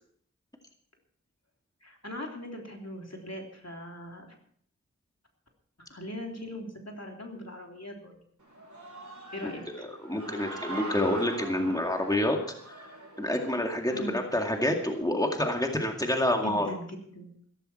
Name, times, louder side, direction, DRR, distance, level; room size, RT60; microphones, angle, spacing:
voice 1, 1.8-4.3 5.9-8.2 9.3-9.8 13.9-14.2 16.4-17.3, equal, 60° left, 1 dB, 3.3 m, -40 dB
Human voice / Cheering, 8.4-15.0, right 1 dB, 75° right, 3.9 m, -43 dB
voice 2, 9.8-12.4 12.7-12.8 13.2-16.7, left 1 dB, 10° left, 2 dB, 2.1 m, -28 dB
15.5 x 14.5 x 4.4 m, 0.64 s
wide cardioid pair, 40°, 30 cm